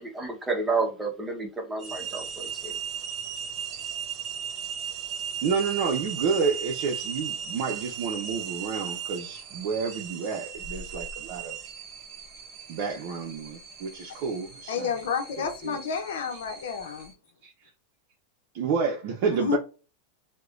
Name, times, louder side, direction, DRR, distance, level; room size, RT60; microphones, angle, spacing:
voice 1, 0.0-2.8, right 3 dB, 15° right, 1.0 m, -30 dB
sound 1, 1.8-17.1, right 8 dB, 40° right, 1.0 m, -37 dB
voice 2, 5.4-11.6 12.7-15.0 15.6-15.8 17.4-17.5 18.5-19.6, right 5 dB, 60° right, 0.6 m, -29 dB
voice 3, 14.7-17.1 19.3-19.6, left 6 dB, 75° left, 0.7 m, -30 dB
4.7 x 2.2 x 2.5 m
hypercardioid pair, 115°, 0 cm